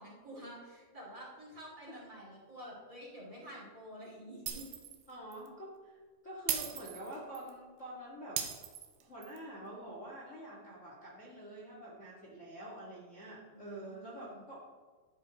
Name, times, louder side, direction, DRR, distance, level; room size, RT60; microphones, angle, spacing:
voice 1, 0.0-4.7 13.5-14.4, equal, 25° right, -5 dB, 2.3 m, -49 dB
Shatter, 4.5-5.0 5.3-5.5 6.5-7.5 8.4-9.4, right 9 dB, 85° right, 2.9 m, -38 dB
voice 2, 5.1-8.4 9.0-14.6, right 1 dB, 80° left, -5 dB, 0.6 m, -47 dB
12.0 x 9.3 x 3.0 m, 1.5 s
omnidirectional pair, 4.8 m